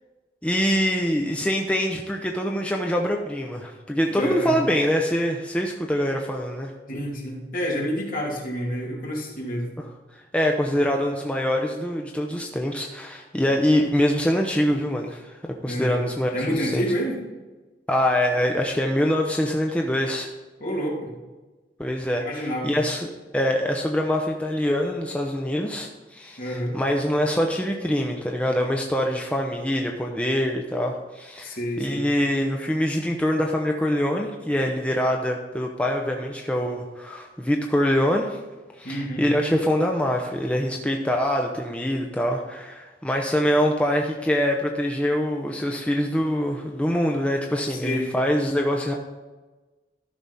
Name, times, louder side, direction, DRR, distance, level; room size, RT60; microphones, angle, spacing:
voice 1, 0.4-6.7 9.8-9.9 10.1-15.3 15.6-16.8 17.9-20.3 21.8-38.4 38.8-48.9, equal, 5° left, 1 dB, 0.7 m, -24 dB
voice 2, 4.1-4.5 6.9-9.7 15.6-16.0 16.3-17.2 20.6-21.1 22.2-22.7 26.4-26.8 31.4-32.1 38.8-39.2 47.7-48.1, equal, 55° left, -2 dB, 2.7 m, -28 dB
13.0 x 6.0 x 4.1 m, 1.2 s
head